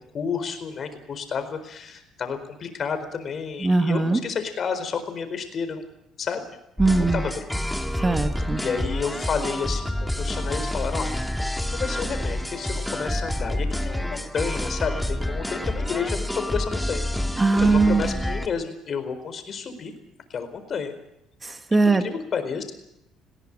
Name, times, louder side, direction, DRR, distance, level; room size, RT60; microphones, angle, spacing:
voice 1, 0.1-5.8 6.2-6.6 7.1-7.4 8.6-17.1 17.6-19.9 20.3-20.9 21.9-22.7, left 6 dB, 50° left, 9 dB, 4.4 m, -31 dB
voice 2, 3.6-4.2 6.8-7.2 8.0-8.6 17.4-18.2 21.4-22.0, right 3 dB, 20° right, 7 dB, 1.8 m, -20 dB
sound 1, 6.8-18.5, left 1 dB, 5° left, 2.0 m, -28 dB
20.0 x 17.5 x 9.0 m, 0.83 s
supercardioid pair, 80°, 0 cm